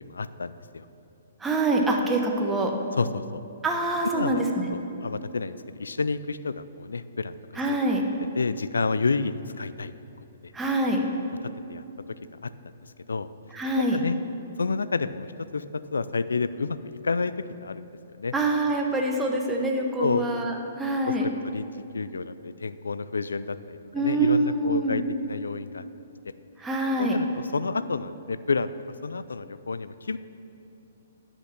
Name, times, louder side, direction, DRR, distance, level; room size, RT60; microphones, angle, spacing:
voice 1, 0.0-0.9 3.0-3.4 4.1-4.4 4.7-7.4 7.7-7.8 8.4-9.9 10.4-10.5 11.7-11.8 12.1-12.5 12.8-13.3 13.8-14.2 14.6-16.8 17.0-18.3 20.0-20.3 21.1-25.9 26.3-26.4 27.0-27.3 27.5-28.7 29.0-30.2, left 4 dB, 85° left, 14 dB, 0.3 m, -30 dB
voice 2, 1.4-2.7 3.6-4.7 7.5-8.0 10.5-11.0 13.5-14.0 18.3-21.3 23.9-25.0 26.6-27.2, right 2 dB, 10° right, 1 dB, 1.1 m, -25 dB
10.5 x 5.9 x 5.9 m, 2.9 s
hypercardioid pair, 130°, 0 cm